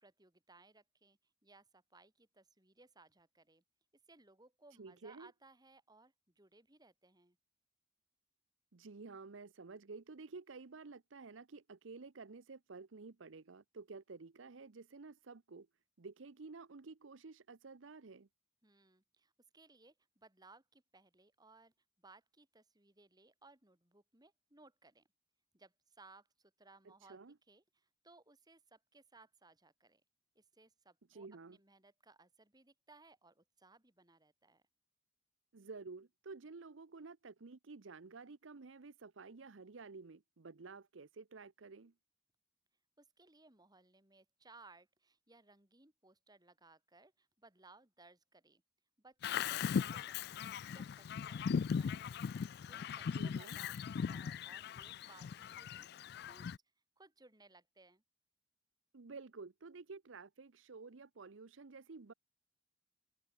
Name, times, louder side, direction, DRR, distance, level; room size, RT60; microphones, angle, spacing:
voice 1, 0.0-3.6 4.1-7.4 18.6-21.7 22.0-25.0 25.5-27.2 27.5-30.0 30.3-34.6 43.0-48.6 49.0-52.1 52.4-56.5 57.0-58.0, right 3 dB, 20° right, 3.0 m, -64 dB
voice 2, 4.8-5.3 8.7-15.7 16.0-18.3 26.8-27.4 31.1-31.6 35.5-41.9 53.0-53.6 58.9-62.1, right 4 dB, 85° right, 0.8 m, -52 dB
Bird vocalization bird call bird song, 49.2-56.6, left 6 dB, 55° left, 0.3 m, -39 dB
head